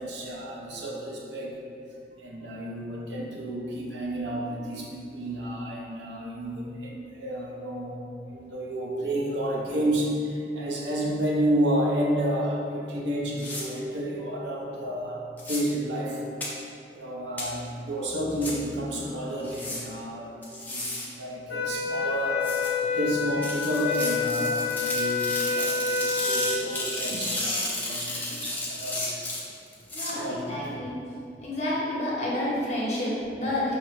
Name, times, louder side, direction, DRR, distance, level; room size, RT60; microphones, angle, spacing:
voice 1, 0.0-1.6 2.2-8.1 8.3-15.2 15.5-16.2 16.9-29.2 30.1-30.7, right 1 dB, 85° right, -2 dB, 0.7 m, -31 dB
sound 1, 13.4-13.6 15.4-15.6 16.4-16.5 17.4-17.5 18.4-18.5 19.4-19.8 20.4-21.1 22.4-22.7 23.4-30.1, left 2 dB, 10° left, 0.5 m, -33 dB
sound 2, 21.5-26.7, left 4 dB, 70° left, 0.5 m, -28 dB
voice 2, 29.9-31.0 31.4-33.7, left 1 dB, 40° left, -7 dB, 1.1 m, -29 dB
5.0 x 2.9 x 3.2 m, 2.4 s
head